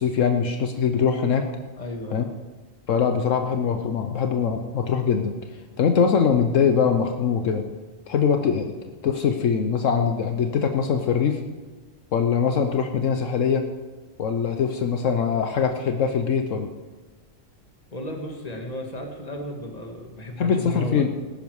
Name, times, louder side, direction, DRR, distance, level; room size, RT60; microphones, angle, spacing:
voice 1, 0.0-1.5 2.1-2.3 2.9-5.4 5.8-7.6 8.1-8.7 9.0-11.4 12.1-13.6 14.2-16.7 20.4-21.1, left 6 dB, 75° left, 6 dB, 1.2 m, -22 dB
voice 2, 1.8-2.3 17.9-21.0, equal, 30° left, 2 dB, 1.9 m, -34 dB
18.5 x 10.5 x 4.8 m, 1.3 s
omnidirectional pair, 1.4 m